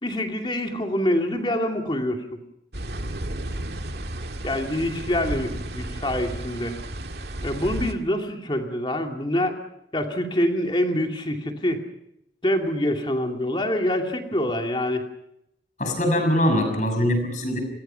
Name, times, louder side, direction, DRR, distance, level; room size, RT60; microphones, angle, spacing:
voice 1, 0.0-2.2 4.4-6.7 7.4-9.6 9.9-11.8 12.4-15.1, left 1 dB, 25° left, 3 dB, 2.5 m, -25 dB
sound 1, 2.7-7.9, right 1 dB, 65° right, 2.0 m, -33 dB
voice 2, 15.8-17.6, equal, 45° left, 5 dB, 6.4 m, -22 dB
28.5 x 22.0 x 5.7 m, 0.81 s
head